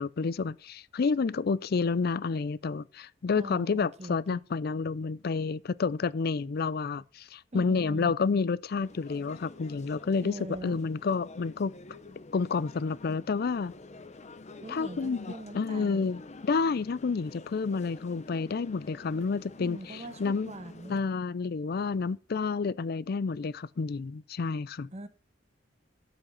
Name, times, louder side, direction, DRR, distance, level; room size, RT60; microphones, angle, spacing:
voice 1, 0.0-10.3 10.6-11.7 12.3-13.7 14.7-15.3 15.5-20.5 20.9-24.9, left 4 dB, 55° left, 0.4 m, -29 dB
voice 2, 3.3-4.4 7.5-8.2 10.2-10.8 14.6-16.1 19.6-20.9 24.9-25.1, right 1 dB, 35° right, 1.1 m, -42 dB
sound 1, 8.8-21.0, left 2 dB, 40° left, 0.9 m, -48 dB
8.9 x 7.7 x 5.5 m
head